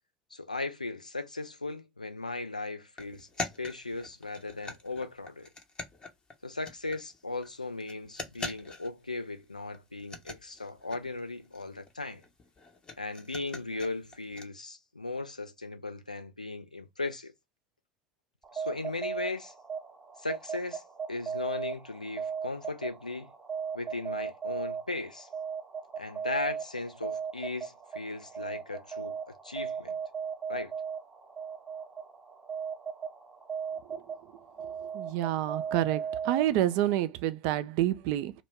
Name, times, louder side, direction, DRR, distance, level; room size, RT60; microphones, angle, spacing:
voice 1, 0.3-5.5 6.4-12.2 13.0-17.3 18.5-19.5 20.2-20.8 21.1-23.3 23.7-25.3 26.0-29.2 29.4-30.0 30.5-30.7, left 3 dB, 85° left, 0.4 m, -37 dB
sound 1, 3.0-7.2 7.4-7.5 7.8-9.2 9.4-9.5 9.7-14.4, left 3 dB, 25° left, 0.7 m, -43 dB
sound 2, 18.4-36.9, right 7 dB, 15° right, 0.6 m, -38 dB
voice 2, 34.9-38.3, right 13 dB, 50° right, 0.3 m, -28 dB
2.1 x 2.1 x 3.3 m
figure-of-eight pair, 70°, 4 cm